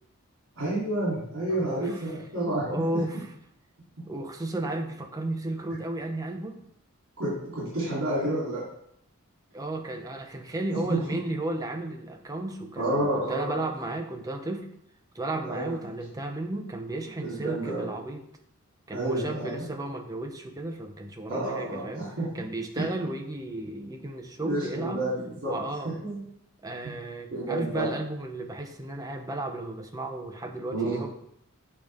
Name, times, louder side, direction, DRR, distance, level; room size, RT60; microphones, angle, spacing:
voice 1, 0.5-3.0 7.2-8.6 10.7-10.8 12.7-13.6 15.4-15.7 17.2-17.9 18.9-19.6 21.3-22.3 22.8-22.9 24.4-25.6 25.8-26.2 27.3-27.9 30.7-31.0, right 1 dB, 65° right, -8 dB, 3.3 m, -30 dB
voice 2, 1.5-2.2 2.7-3.3 4.1-6.6 9.5-14.7 15.1-18.2 18.9-22.1 22.3-25.1 25.4-25.9 26.6-31.1, right 2 dB, 15° right, 3 dB, 0.7 m, -34 dB
8.5 x 5.0 x 3.6 m, 0.71 s
head